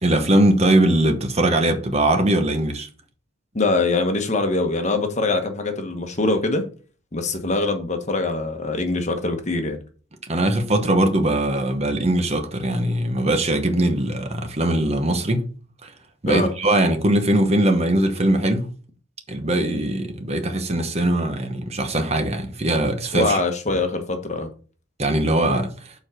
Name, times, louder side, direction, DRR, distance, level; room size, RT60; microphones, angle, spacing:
voice 1, 0.0-2.9 10.3-15.5 16.2-18.7 19.3-23.4 25.0-25.7, right 1 dB, 30° right, 1.0 m, -21 dB
voice 2, 3.5-6.6 7.1-9.8 16.3-16.5 23.1-24.5, left 2 dB, 35° left, 1.1 m, -23 dB
7.0 x 4.6 x 5.0 m
head